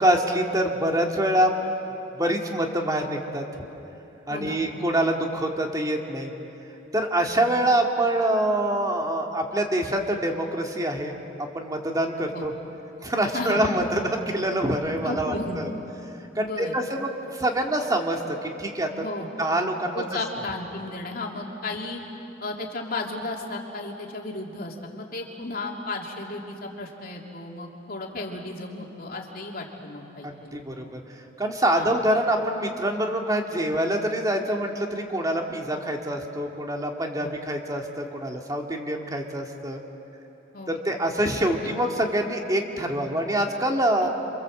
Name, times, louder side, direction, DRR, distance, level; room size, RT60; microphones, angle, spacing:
voice 1, 0.0-1.5 2.1-3.4 4.3-6.3 6.9-12.5 13.0-15.7 16.3-18.9 19.4-20.2 30.2-31.0 31.4-39.8 40.7-44.1, right 1 dB, 20° right, 2 dB, 2.3 m, -25 dB
voice 2, 13.3-13.8 15.0-15.7 16.3-16.7 18.9-19.3 19.9-22.0 22.4-30.9 31.7-31.9 37.2-37.3 40.5-40.7 44.0-44.1, left 2 dB, 50° left, 0 dB, 3.2 m, -34 dB
27.5 x 26.5 x 7.8 m, 2.9 s
head